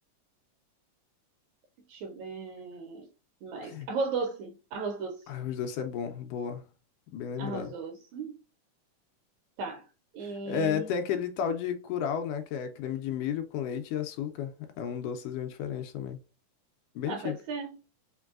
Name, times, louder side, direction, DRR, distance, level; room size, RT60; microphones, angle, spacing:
voice 1, 1.9-3.1 3.4-5.3 7.4-8.4 9.6-9.8 10.1-10.9 17.1-17.7, right 4 dB, 75° right, 1.8 m, -36 dB
voice 2, 5.3-6.6 7.1-7.7 10.2-16.2 17.0-17.4, left 8 dB, 80° left, 2.0 m, -33 dB
5.2 x 3.1 x 2.4 m
omnidirectional pair, 3.9 m